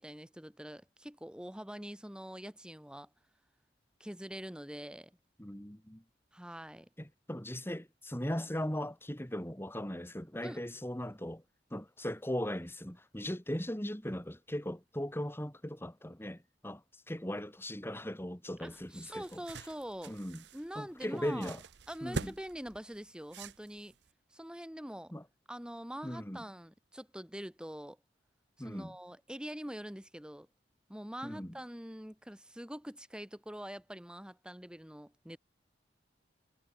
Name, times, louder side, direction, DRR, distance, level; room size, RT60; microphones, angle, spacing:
voice 1, 0.0-3.1 4.0-5.1 6.3-6.9 10.4-10.6 18.6-20.2 20.5-21.5 21.9-23.9 24.3-25.1 25.5-28.0 28.6-30.5 30.9-35.4, equal, 5° right, 2.1 m, -44 dB
voice 2, 5.4-6.0 7.0-11.4 11.7-19.4 20.1-20.4 20.7-21.6 22.0-22.3 25.1-25.2 26.0-26.4 28.6-29.0 31.2-31.5, equal, 15° left, 3.4 m, -38 dB
sound 1, 18.7-24.1, right 3 dB, 70° right, 0.9 m, -45 dB
head